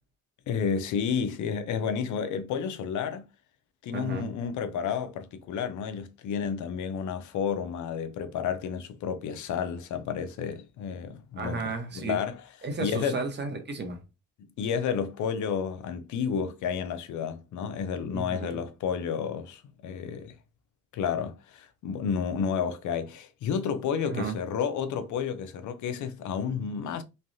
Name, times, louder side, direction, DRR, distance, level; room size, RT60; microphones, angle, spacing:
voice 1, 0.5-3.2 3.8-11.6 11.9-12.4 12.8-13.2 14.6-20.3 20.9-27.0, left 7 dB, 75° left, 0.6 m, -31 dB
voice 2, 3.9-4.3 11.4-12.2 12.6-14.0 18.1-18.6 24.0-24.4, right 4 dB, 35° right, 1.0 m, -33 dB
3.2 x 2.3 x 2.6 m
cardioid pair, 90°, 30 cm